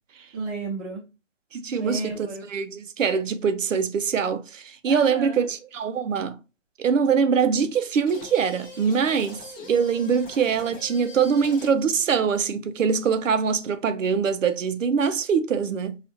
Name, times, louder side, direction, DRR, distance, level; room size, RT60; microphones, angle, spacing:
voice 1, 0.3-1.1 1.8-2.5 4.9-5.5, right 3 dB, 15° right, 0.8 m, -33 dB
voice 2, 1.5-2.1 2.5-6.4 6.8-9.4 9.7-16.0, right 6 dB, 90° right, 0.5 m, -23 dB
sound 1, 8.1-12.0, left 2 dB, 20° left, 0.5 m, -43 dB
4.3 x 2.4 x 2.7 m
hypercardioid pair, 145°, 37 cm